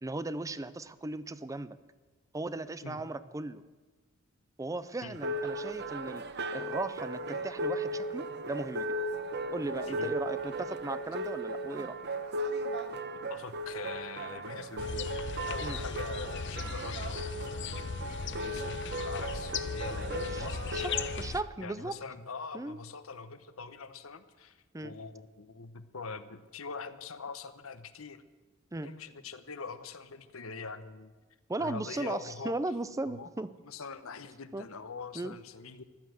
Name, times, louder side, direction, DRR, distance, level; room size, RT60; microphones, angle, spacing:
voice 1, 0.0-1.8 2.3-3.6 4.6-6.2 6.5-9.0 9.5-12.0 15.6-15.8 20.1-20.5 20.7-21.9 22.5-22.8 24.7-25.0 28.7-28.9 31.5-33.5 34.5-34.7 35.1-35.4, right 2 dB, 15° right, 14 dB, 0.5 m, -37 dB
sound 1, 5.1-21.3, right 1 dB, 55° right, 1.0 m, -36 dB
voice 2, 13.3-15.1 15.5-17.7 18.4-21.0 21.6-28.2 28.8-31.1 31.6-32.5 33.1-33.3 33.6-35.8, left 4 dB, 80° left, 12 dB, 1.0 m, -43 dB
sound 2, 14.8-21.4, left 5 dB, 60° left, 0.6 m, -38 dB
15.0 x 12.0 x 7.8 m, 1.3 s
head